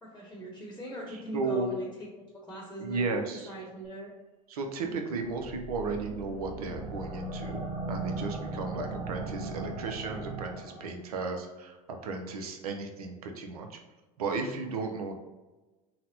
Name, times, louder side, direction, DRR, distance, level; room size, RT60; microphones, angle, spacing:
voice 1, 0.0-2.1 2.3-3.1 3.5-4.1 4.8-5.0 8.8-8.9, right 1 dB, 5° left, -3 dB, 0.9 m, -41 dB
voice 2, 1.1-1.7 2.8-3.5 4.5-7.6 7.9-13.8 14.2-15.1, right 3 dB, 85° right, 4 dB, 0.5 m, -34 dB
sound 1, 5.3-10.9, right 3 dB, 25° right, 0.8 m, -38 dB
3.9 x 2.1 x 2.8 m, 1.1 s
hypercardioid pair, 80°, 19 cm